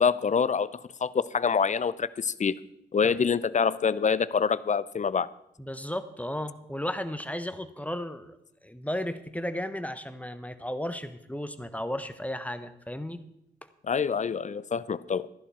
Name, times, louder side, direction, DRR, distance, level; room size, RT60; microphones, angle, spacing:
voice 1, 0.0-2.6 2.9-5.3 13.8-15.3, left 6 dB, 35° left, 18 dB, 0.6 m, -26 dB
voice 2, 5.6-8.4 8.6-13.2, left 1 dB, 5° left, 11 dB, 1.3 m, -34 dB
14.0 x 11.0 x 4.4 m, 0.80 s
hypercardioid pair, 40°, 21 cm